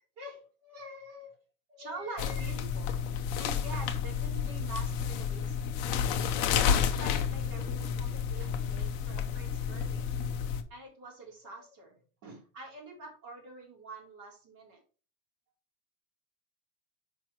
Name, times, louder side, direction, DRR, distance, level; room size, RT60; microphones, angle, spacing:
voice 1, 0.2-1.3 1.7-3.0 3.4-5.7 6.3-10.1 10.7-14.8, right 2 dB, 35° right, -2 dB, 3.3 m, -45 dB
sound 1, 2.2-10.6, left 7 dB, 30° left, 0.6 m, -31 dB
6.1 x 5.4 x 4.5 m, 0.37 s
supercardioid pair, 180°, 40 cm